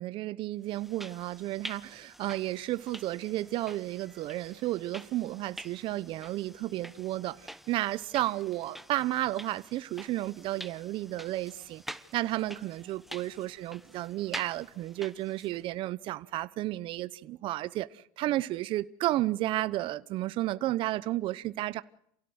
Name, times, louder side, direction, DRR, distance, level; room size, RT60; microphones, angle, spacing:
voice 1, 0.0-21.8, right 16 dB, 55° right, 0.9 m, -32 dB
sound 1, 0.7-15.6, right 1 dB, ahead, 1.4 m, -48 dB
28.0 x 17.0 x 7.9 m
supercardioid pair, 105°, 11 cm